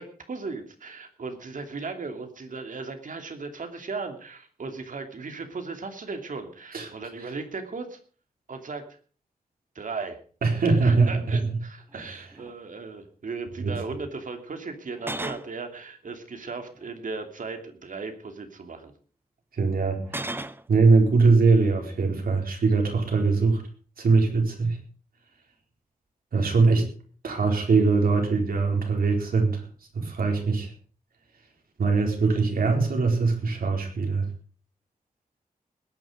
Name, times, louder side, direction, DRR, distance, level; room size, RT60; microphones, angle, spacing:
voice 1, 0.0-8.0 8.5-8.8 9.7-10.2 10.6-18.9, right 4 dB, 65° right, 6 dB, 2.8 m, -37 dB
voice 2, 10.4-11.6 11.9-12.3 13.6-13.7 19.5-20.4 20.7-23.6 24.0-24.8 26.3-26.9 27.2-29.6 29.9-30.7 31.8-34.3, right 4 dB, 85° right, 2 dB, 4.4 m, -22 dB
sound 1, 11.9-12.0 12.3-12.5 14.9-15.5 16.7-17.2 20.0-20.6, right 2 dB, 15° right, 0.8 m, -34 dB
20.5 x 9.5 x 5.1 m, 0.41 s
wide cardioid pair, 115°, 15 cm